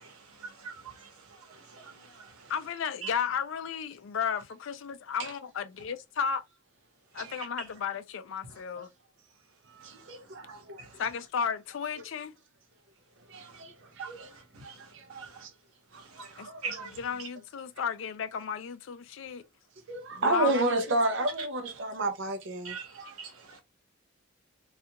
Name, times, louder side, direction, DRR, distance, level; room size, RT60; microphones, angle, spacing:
voice 1, 0.0-2.5 3.0-3.1 7.2-7.5 8.5-8.6 10.4-11.0 13.3-13.6 14.0-15.5 15.9-17.3 22.6-23.6, right 5 dB, 90° right, 0.9 m, -44 dB
voice 2, 1.5-2.1 2.4-2.5 5.2-5.3 9.7-10.9 13.3-14.3 14.6-15.5 15.9-16.9 19.9-22.8, right 2 dB, 60° right, 0.5 m, -32 dB
voice 3, 2.5-6.4 7.1-8.9 11.0-12.3 16.4-16.5 17.0-19.4 20.1-21.0, left 6 dB, 65° left, 0.4 m, -33 dB
2.3 x 2.2 x 2.8 m
head